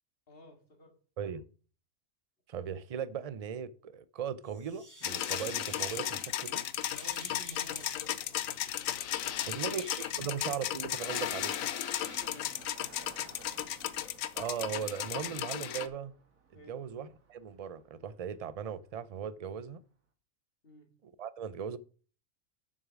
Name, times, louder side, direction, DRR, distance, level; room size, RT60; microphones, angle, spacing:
voice 1, 0.3-0.9 6.9-8.5 9.2-9.7 10.1-10.3 12.0-12.5 16.5-16.8 20.6-20.9, equal, 45° left, 2.1 m, -53 dB
voice 2, 2.5-6.6 9.5-11.5 14.3-16.1 16.7-19.8 21.0-21.8, right 7 dB, 60° right, 0.3 m, -38 dB
sound 1, 4.5-6.3 6.7-8.3 9.0-9.1 9.6-10.2 10.9-12.4, right 1 dB, 15° right, 1.9 m, -51 dB
sound 2, 5.0-15.9, left 11 dB, 85° left, 1.1 m, -35 dB
Car passing by, 8.7-19.8, right 4 dB, 90° right, 2.0 m, -60 dB
7.2 x 6.5 x 6.1 m
omnidirectional pair, 1.4 m